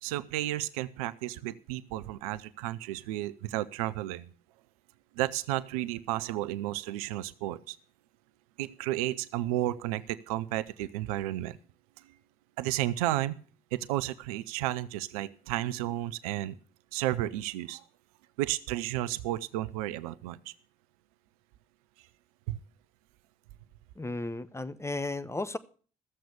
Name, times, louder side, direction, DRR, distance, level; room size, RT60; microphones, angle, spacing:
voice 1, 0.0-4.3 5.2-7.8 8.6-11.6 12.6-13.3 13.7-16.6 16.9-17.8 18.4-20.5 22.5-22.6, right 15 dB, 80° right, 16 dB, 0.6 m, -32 dB
voice 2, 24.0-25.6, left 2 dB, 15° left, 13 dB, 1.1 m, -34 dB
14.0 x 7.7 x 6.8 m, 0.42 s
hypercardioid pair, 45°, 18 cm